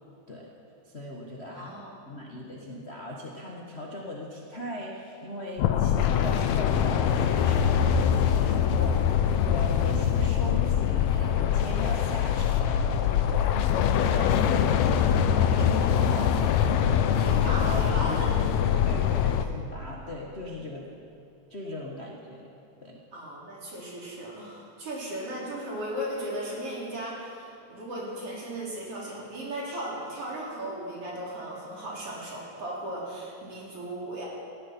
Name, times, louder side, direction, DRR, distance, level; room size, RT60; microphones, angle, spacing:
voice 1, 0.8-13.7 14.0-16.5 18.6-20.9 21.5-22.5 22.8-23.0, left 1 dB, 35° left, -2 dB, 1.0 m, -39 dB
voice 2, 1.5-2.0 17.2-18.6 20.0-20.1 23.1-34.3, right 1 dB, 50° right, -5 dB, 4.4 m, -36 dB
sound 1, 5.6-19.5, left 8 dB, 75° left, 1.9 m, -23 dB
19.0 x 15.5 x 4.5 m, 2.5 s
omnidirectional pair, 3.4 m